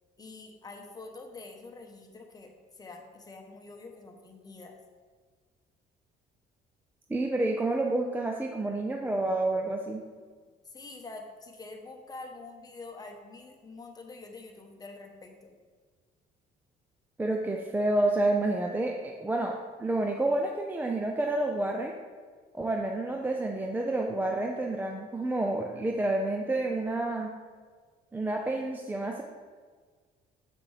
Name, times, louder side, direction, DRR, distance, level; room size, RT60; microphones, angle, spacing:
voice 1, 0.2-4.8 10.6-15.5, left 3 dB, 20° left, 3 dB, 1.0 m, -46 dB
voice 2, 7.1-10.0 17.2-19.5 19.8-22.0 22.5-27.3 28.1-29.2, right 2 dB, 10° right, 1 dB, 0.5 m, -29 dB
7.6 x 5.8 x 3.3 m, 1.5 s
cardioid pair, 110°, 17 cm